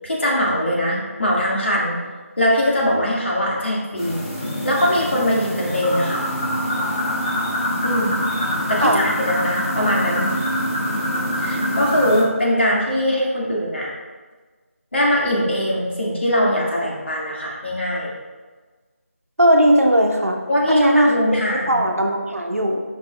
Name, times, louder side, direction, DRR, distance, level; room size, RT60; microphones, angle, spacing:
voice 1, 0.0-2.0 2.4-4.2 4.6-6.2 7.8-8.2 8.7-10.3 11.4-13.9 14.9-18.1 20.5-21.8, equal, 55° left, -4 dB, 2.2 m, -21 dB
sound 1, 4.0-12.2, equal, 20° left, 1.1 m, -25 dB
voice 2, 19.4-20.4 20.7-22.8, equal, 75° right, 2 dB, 1.1 m, -18 dB
12.0 x 5.4 x 2.4 m, 1.4 s
figure-of-eight pair, 165°, 8 cm